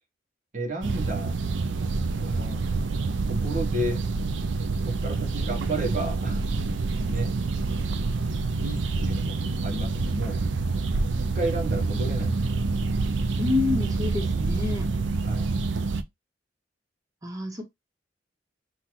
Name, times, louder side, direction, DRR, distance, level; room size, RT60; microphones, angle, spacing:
voice 1, 0.5-1.3 2.2-2.6 3.3-4.1 4.8-6.4 7.0-7.3 8.6-10.4 11.2-12.6 15.2-15.5, right 1 dB, 45° right, 0.9 m, -32 dB
sound 1, 0.8-16.0, right 3 dB, 80° right, 0.5 m, -27 dB
voice 2, 13.4-14.9 17.2-17.6, left 3 dB, 20° right, 1.1 m, -28 dB
5.9 x 2.5 x 2.9 m
head